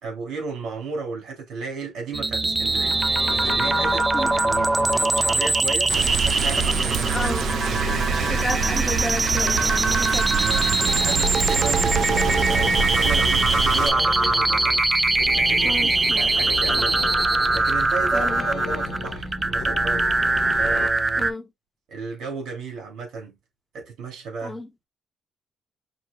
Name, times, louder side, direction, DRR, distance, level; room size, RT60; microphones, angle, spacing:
voice 1, 0.0-3.0 3.4-4.7 5.1-7.3 9.6-17.0 17.5-20.1 20.5-21.3 21.9-23.4 23.7-24.6, right 4 dB, 80° right, 2.6 m, -34 dB
sound 1, 2.1-21.3, right 3 dB, 20° right, 0.4 m, -22 dB
sound 2, 2.4-20.9, left 7 dB, 70° left, 0.8 m, -35 dB
Rain, 5.9-13.9, right 6 dB, 60° right, 0.6 m, -26 dB
voice 2, 7.1-7.5 8.3-10.3 15.6-16.3 16.8-16.9 18.1-18.5 21.2-21.5 24.4-24.7, left 1 dB, 10° left, 0.7 m, -31 dB
6.0 x 3.0 x 2.3 m
cardioid pair, 120°, 0 cm